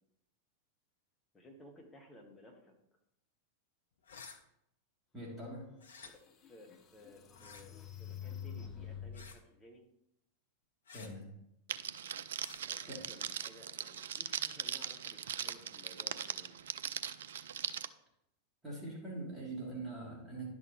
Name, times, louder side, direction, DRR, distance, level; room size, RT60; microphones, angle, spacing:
voice 1, 1.3-2.7 6.0-9.9 12.7-16.6, left 1 dB, 15° left, 1 dB, 1.6 m, -57 dB
sound 1, 4.0-4.4 5.8-6.1 7.3-7.6 9.1-9.4 10.9-11.1 12.4-12.6, left 5 dB, 65° left, 0.8 m, -52 dB
voice 2, 5.1-5.7 10.9-11.3 12.9-13.1 18.6-20.5, right 2 dB, 15° right, -4 dB, 3.2 m, -43 dB
sound 2, 5.6-5.7 6.3-9.4, left 8 dB, 30° left, 0.9 m, -47 dB
Crackle, 11.7-17.9, right 9 dB, 60° right, 0.3 m, -40 dB
10.5 x 6.2 x 3.2 m, 0.80 s
figure-of-eight pair, 90°, 0 cm